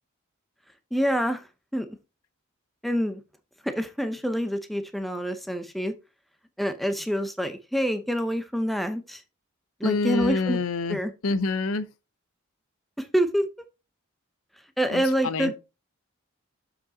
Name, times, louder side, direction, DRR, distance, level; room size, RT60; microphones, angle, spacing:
voice 1, 0.9-1.4 1.7-1.9 2.8-3.2 3.6-5.9 6.6-9.2 9.8-10.6 10.9-11.1 13.0-13.5 14.8-15.5, equal, ahead, 0.7 m, -26 dB
voice 2, 9.8-11.9 14.9-15.5, left 3 dB, 85° left, 0.7 m, -27 dB
7.3 x 5.1 x 4.0 m
head